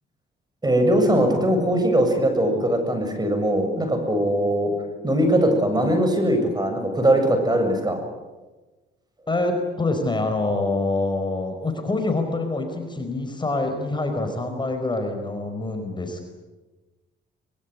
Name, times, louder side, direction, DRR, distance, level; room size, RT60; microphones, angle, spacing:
voice 1, 0.6-4.7 5.0-8.0, right 1 dB, 20° right, 6 dB, 7.1 m, -20 dB
voice 2, 9.3-16.3, left 2 dB, 25° left, 5 dB, 4.7 m, -26 dB
23.5 x 22.0 x 9.6 m, 1.2 s
cardioid pair, 90°, 20 cm